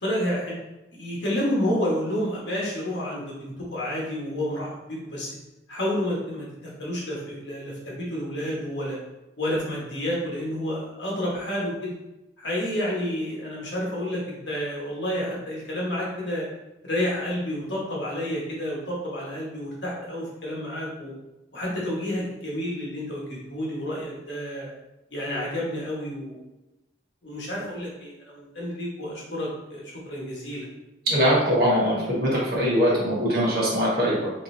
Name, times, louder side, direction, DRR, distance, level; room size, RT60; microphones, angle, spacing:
voice 1, 0.0-0.5 0.9-5.3 5.7-9.0 9.4-11.9 12.4-16.4 16.8-21.1 21.5-24.7 25.1-26.4 27.2-30.7, equal, 75° left, -4 dB, 1.3 m, -30 dB
voice 2, 31.1-34.3, equal, 55° right, -6 dB, 1.5 m, -22 dB
4.0 x 3.6 x 2.7 m, 1.0 s
head